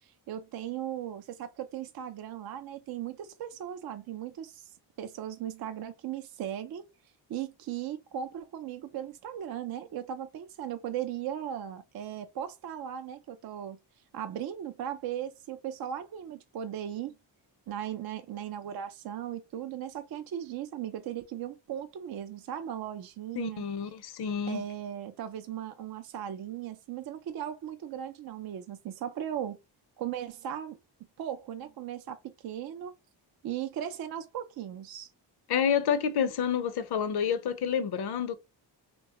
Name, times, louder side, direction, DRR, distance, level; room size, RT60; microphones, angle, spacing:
voice 1, 0.0-4.7 5.0-6.8 7.3-13.8 14.1-17.1 17.7-23.6 24.5-29.6 30.0-30.8 31.2-32.2 32.4-32.9 33.4-35.1, right 10 dB, 55° right, 0.5 m, -37 dB
voice 2, 23.4-24.6 35.5-38.4, left 7 dB, 60° left, 0.5 m, -29 dB
3.0 x 2.2 x 2.8 m
cardioid pair, 100°, 45 cm